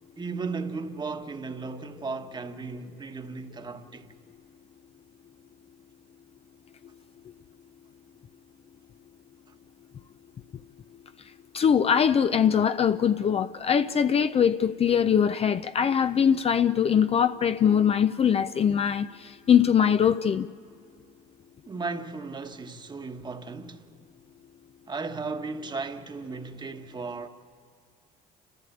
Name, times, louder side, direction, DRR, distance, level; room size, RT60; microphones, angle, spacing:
voice 1, 0.2-4.1 21.6-23.9 24.9-27.3, right 4 dB, 25° right, 1.3 m, -35 dB
voice 2, 11.5-20.5, left 8 dB, 35° left, 0.5 m, -22 dB
28.5 x 14.5 x 8.5 m
cardioid pair, 110°, 17 cm